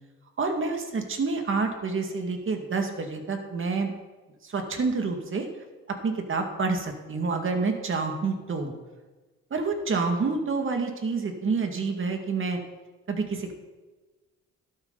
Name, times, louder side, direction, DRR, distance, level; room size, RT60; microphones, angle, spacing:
voice 1, 0.4-3.9 4.4-5.5 6.0-8.7 9.5-12.6 13.1-13.5, right 4 dB, 40° right, 4 dB, 2.2 m, -28 dB
12.5 x 12.0 x 4.0 m, 1.2 s
cardioid pair, 90°, 30 cm